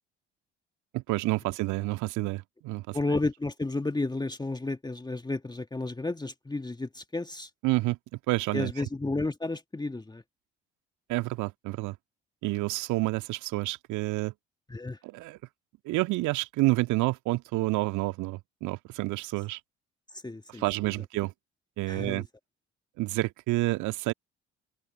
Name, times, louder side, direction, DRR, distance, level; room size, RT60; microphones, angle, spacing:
voice 1, 0.9-3.0 7.6-8.7 11.1-12.0 12.4-14.3 15.0-15.4 15.8-19.6 20.5-21.3 21.8-22.3 23.0-24.1, right 20 dB, 60° right, 2.2 m, -29 dB
voice 2, 2.9-7.5 8.5-10.2 14.7-15.0 20.2-20.6 21.9-22.2, left 2 dB, 10° left, 1.8 m, -32 dB
open air
figure-of-eight pair, 50°, 34 cm